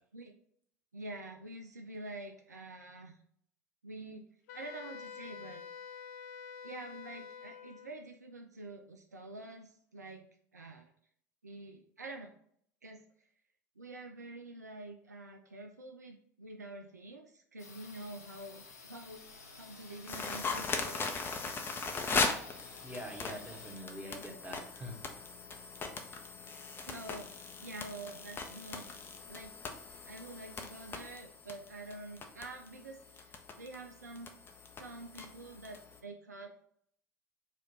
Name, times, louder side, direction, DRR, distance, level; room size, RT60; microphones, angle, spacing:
voice 1, 0.9-3.2 3.8-4.2 4.5-5.7 6.6-10.9 11.4-12.3 12.8-13.0 13.8-21.2 26.4-27.3 27.6-29.0 29.3-29.5 30.0-34.3 34.8-36.6, right 2 dB, 80° right, 4 dB, 0.4 m, -47 dB
Wind instrument woodwind instrument, 4.5-7.9, left 6 dB, 60° left, 0.3 m, -47 dB
sound 1, 17.6-23.8, left 4 dB, 75° left, 0.7 m, -53 dB
sound 2, 20.1-36.0, left 4 dB, 25° left, 0.7 m, -39 dB
voice 2, 22.8-25.2, equal, 15° right, 0 dB, 1.3 m, -45 dB
4.9 x 2.5 x 4.1 m, 0.64 s
figure-of-eight pair, 70°, 9 cm